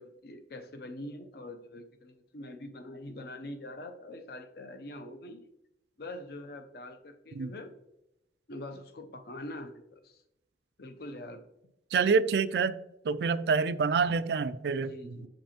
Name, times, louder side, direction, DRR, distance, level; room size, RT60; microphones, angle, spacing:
voice 1, 0.0-5.4 6.0-7.7 8.5-10.2 10.8-11.4 14.7-15.3, left 1 dB, 55° left, 8 dB, 0.6 m, -44 dB
voice 2, 11.9-12.8 13.0-15.3, right 5 dB, 65° right, 14 dB, 0.3 m, -27 dB
8.2 x 5.2 x 2.9 m, 0.86 s
head